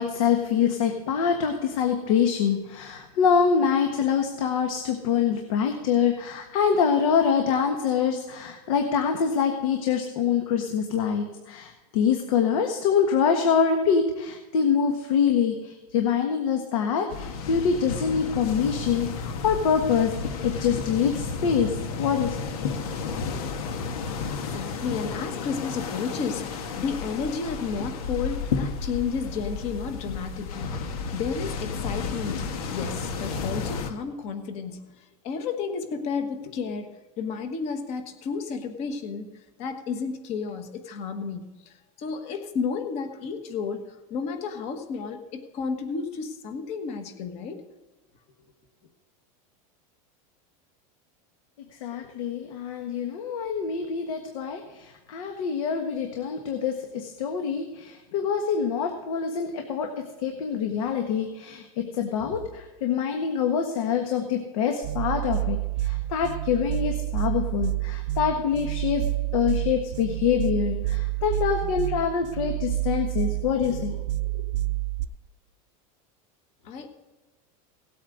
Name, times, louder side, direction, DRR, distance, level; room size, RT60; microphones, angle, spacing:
voice 1, 0.0-22.4 23.3-23.4 51.7-69.0 69.3-74.0 74.3-74.5, left 7 dB, 65° left, 4 dB, 1.5 m, -25 dB
sound 1, 17.1-33.9, left 5 dB, 85° left, 1.5 m, -32 dB
voice 2, 24.3-36.9 37.2-47.6 76.6-76.9, left 5 dB, 35° left, 7 dB, 1.4 m, -32 dB
sound 2, 64.8-75.0, right 16 dB, 55° right, 0.7 m, -29 dB
18.0 x 8.6 x 3.9 m, 1.1 s
supercardioid pair, 170°, 19 cm